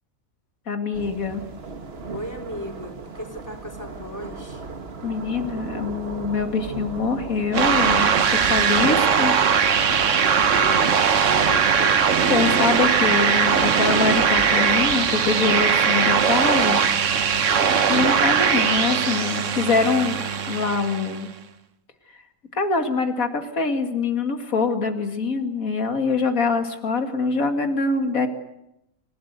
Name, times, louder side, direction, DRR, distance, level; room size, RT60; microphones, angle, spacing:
voice 1, 0.7-1.4 5.0-8.1 8.4-9.3 12.3-16.8 17.9-21.3 22.5-28.3, left 4 dB, 85° left, 6 dB, 2.6 m, -24 dB
sound 1, 0.9-18.9, right 4 dB, 50° right, 1.8 m, -38 dB
voice 2, 2.1-4.6 10.1-12.1 17.5-18.0, equal, 10° left, 1 dB, 3.7 m, -36 dB
sound 2, 7.5-21.2, right 7 dB, 65° right, 1.4 m, -20 dB
28.0 x 17.0 x 8.2 m, 0.85 s
omnidirectional pair, 1.4 m